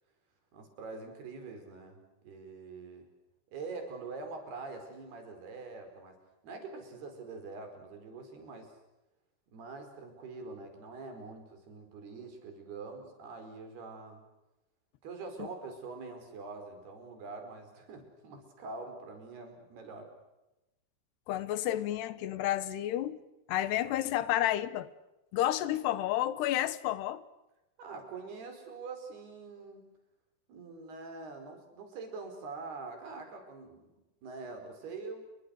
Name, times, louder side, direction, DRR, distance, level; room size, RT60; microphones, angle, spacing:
voice 1, 0.5-3.1 3.5-6.2 6.4-8.7 9.5-14.2 15.0-20.1 27.8-29.9 30.5-33.9 34.2-35.3, right 4 dB, 70° right, 6 dB, 6.8 m, -44 dB
voice 2, 21.3-23.2 23.5-24.9 25.3-27.2, left 13 dB, 85° left, 16 dB, 3.3 m, -30 dB
30.0 x 23.5 x 6.6 m, 0.96 s
omnidirectional pair, 4.7 m